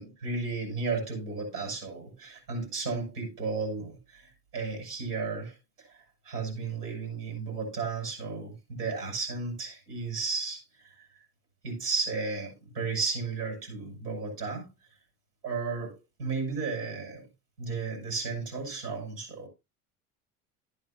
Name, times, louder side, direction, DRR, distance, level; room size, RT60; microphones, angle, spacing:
voice 1, 0.0-11.2 11.6-14.7 15.4-17.3 17.6-19.5, right 4 dB, 90° right, 6.3 m, -34 dB
12.0 x 10.5 x 2.7 m
hypercardioid pair, 75°, 45 cm